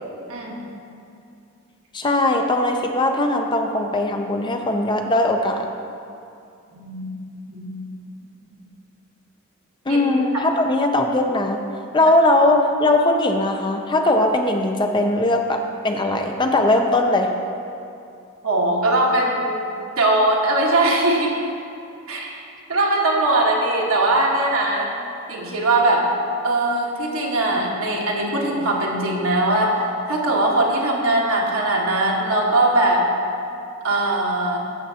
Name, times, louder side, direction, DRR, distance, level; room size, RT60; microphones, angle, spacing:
voice 1, 0.3-0.6 6.7-7.1 7.5-7.7 9.9-10.0 18.4-21.4 22.1-22.3 22.7-24.9 25.3-26.1 26.4-33.0 33.8-34.6, right 2 dB, 75° right, -2 dB, 1.4 m, -20 dB
voice 2, 1.9-5.7 9.9-11.6 11.9-17.3, left 2 dB, 20° left, 4 dB, 0.5 m, -19 dB
12.5 x 7.3 x 2.8 m, 2.5 s
head